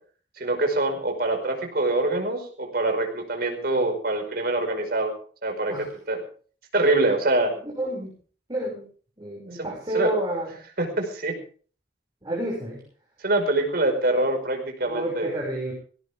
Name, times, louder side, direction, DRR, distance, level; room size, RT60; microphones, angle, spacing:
voice 1, 0.4-5.1 5.4-5.7 6.1-6.2 6.7-7.5 9.5-9.7 9.9-10.1 10.8-11.3 13.2-15.3, right 2 dB, 60° right, 5 dB, 5.2 m, -24 dB
voice 2, 7.6-8.1 8.5-8.9 9.2-10.5 12.2-12.8 14.8-15.7, right 1 dB, 25° right, -3 dB, 6.3 m, -29 dB
19.0 x 17.0 x 3.6 m, 0.42 s
head